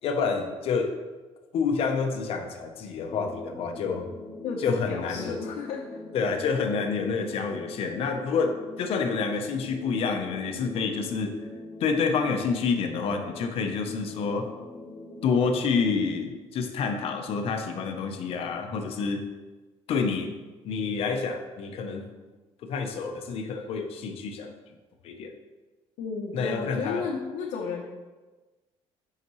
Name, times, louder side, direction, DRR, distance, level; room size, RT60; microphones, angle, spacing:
voice 1, 0.0-1.0 1.5-4.1 4.6-5.4 6.1-11.4 11.8-14.5 15.2-19.3 19.9-20.3 20.6-22.1 22.6-24.5 25.0-25.3 26.3-27.1, left 5 dB, 55° left, 5 dB, 0.8 m, -28 dB
sound 1, 3.0-16.1, left 2 dB, 20° left, 2.2 m, -42 dB
voice 2, 4.4-5.8 26.0-27.8, left 5 dB, 85° left, -2 dB, 0.9 m, -33 dB
8.2 x 5.8 x 3.1 m, 1.2 s
cardioid pair, 155°, 11 cm